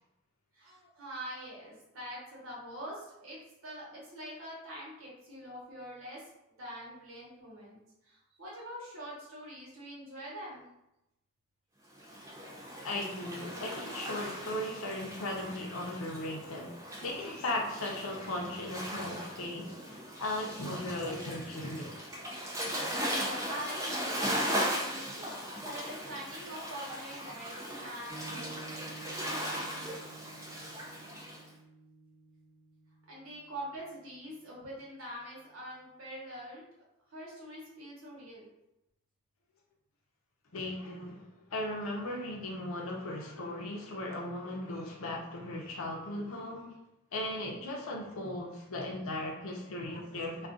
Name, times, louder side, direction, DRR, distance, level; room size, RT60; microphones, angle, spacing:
voice 1, 0.5-10.7 14.3-14.9 22.9-25.3 25.6-28.7 33.1-38.5, equal, 75° right, -6 dB, 1.0 m, -45 dB
Waves surf, 12.0-31.4, equal, 15° right, 0.5 m, -38 dB
voice 2, 12.8-22.3 40.5-41.2 41.5-46.7 47.1-50.5, left 1 dB, 75° left, 0 dB, 0.7 m, -37 dB
Piano, 28.1-34.8, right 3 dB, 10° left, 1.0 m, -52 dB
2.4 x 2.4 x 3.7 m, 0.87 s
head